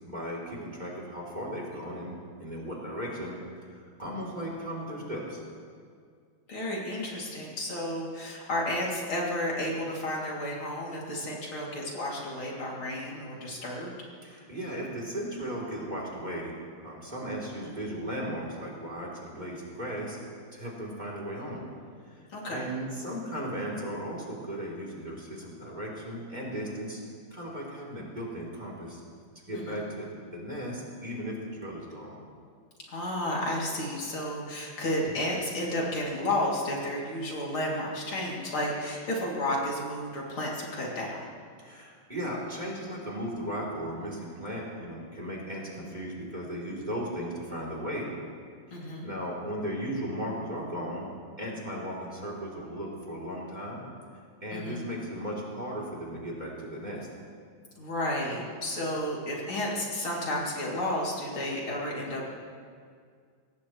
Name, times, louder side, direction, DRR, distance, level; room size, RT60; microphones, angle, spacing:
voice 1, 0.1-3.4 3.7-5.4 14.2-16.5 16.8-20.2 20.5-21.6 22.1-27.0 27.3-29.0 29.5-32.2 41.6-48.1 49.0-51.1 51.4-53.8 54.4-57.1, equal, 20° right, -3 dB, 3.4 m, -36 dB
voice 2, 6.5-13.9 22.3-22.7 29.5-29.8 32.9-41.3 48.7-49.1 54.5-54.8 57.8-62.3, left 1 dB, 80° left, -4 dB, 3.7 m, -32 dB
24.0 x 18.0 x 3.2 m, 2.1 s
omnidirectional pair, 2.3 m